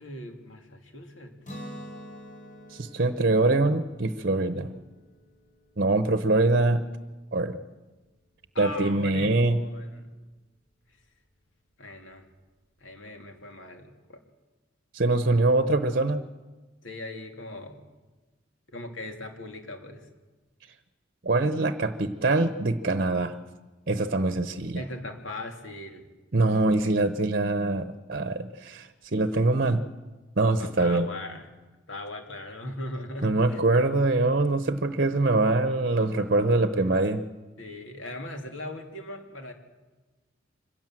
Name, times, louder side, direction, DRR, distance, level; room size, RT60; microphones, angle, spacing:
voice 1, 0.0-1.3 8.5-10.1 11.8-12.2 12.8-14.2 16.8-17.8 18.7-20.1 24.7-26.0 30.6-31.5 31.9-33.6 36.9-37.0 37.6-39.5, left 1 dB, 80° left, 4 dB, 2.9 m, -39 dB
Guitar, 1.4-7.3, equal, 45° left, 3.8 m, -47 dB
voice 2, 2.7-4.8 5.8-6.8 7.3-7.6 8.6-9.6 14.9-16.2 21.2-23.4 23.9-24.8 26.3-29.8 30.4-31.1 33.2-37.2, right 2 dB, 50° right, 10 dB, 0.9 m, -24 dB
25.0 x 17.0 x 7.7 m, 1.2 s
head